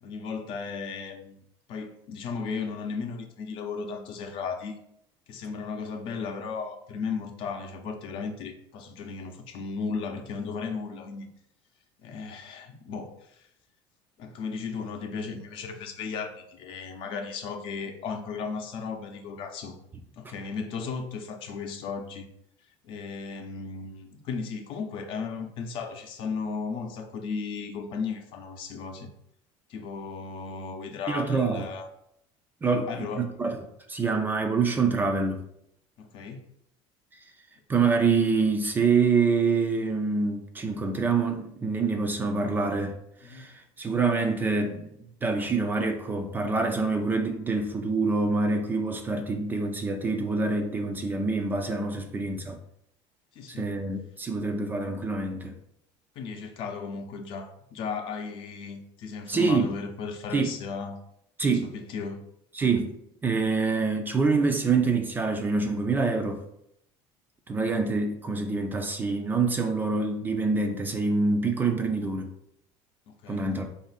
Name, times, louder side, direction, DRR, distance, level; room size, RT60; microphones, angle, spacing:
voice 1, 0.0-1.4 1.7-4.8 5.3-11.3 12.0-13.5 14.2-19.7 20.2-22.3 22.8-29.1 29.7-31.9 32.6-33.3 36.0-36.4 43.2-43.5 51.9-52.1 53.3-53.7 56.2-61.0 61.6-62.2 73.1-73.5, left 5 dB, 50° left, 0.6 m, -35 dB
voice 2, 31.1-31.7 32.6-33.6 33.9-35.4 37.7-44.9 45.2-52.6 53.5-55.6 59.3-59.8 60.3-60.5 61.4-61.7 62.5-62.9 63.2-66.4 67.5-72.3 73.3-73.7, right 4 dB, 15° right, 0.4 m, -26 dB
4.1 x 2.6 x 3.9 m
cardioid pair, 155°, 11 cm